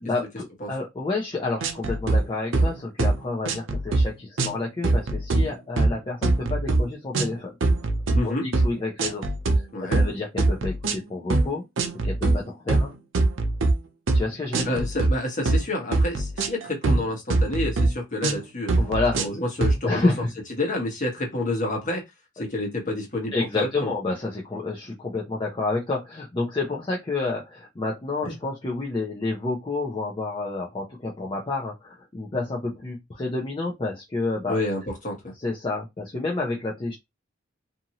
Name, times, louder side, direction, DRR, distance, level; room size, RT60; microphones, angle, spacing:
voice 1, 0.0-7.5 8.2-9.2 9.5-11.6 12.0-12.9 14.1-14.6 18.8-19.2 19.8-20.3 23.3-34.6 35.4-37.0, left 3 dB, 25° left, 0.6 m, -29 dB
sound 1, 1.6-2.2 2.5-2.7 3.0-3.2 3.4-4.1 4.4-4.6 4.8-5.5 5.8-5.9 6.2-6.8 7.1-7.3 7.6-8.2 8.5-8.7 9.0-9.6 9.9-10.1 10.4-11.0 11.3-11.5 11.8-12.4 12.7-13.7 14.1-14.2 14.5-15.1 15.4-15.6 15.9-17.0 17.3-17.9 18.2-18.4 18.7-19.3 19.6-19.8, right 2 dB, 85° right, 0.6 m, -22 dB
voice 2, 8.1-8.5 9.7-10.0 14.6-18.7 19.2-20.1 20.6-22.0 22.4-23.9 28.2-28.3 34.5-35.3, left 2 dB, 45° left, 1.2 m, -28 dB
2.7 x 2.5 x 2.8 m
head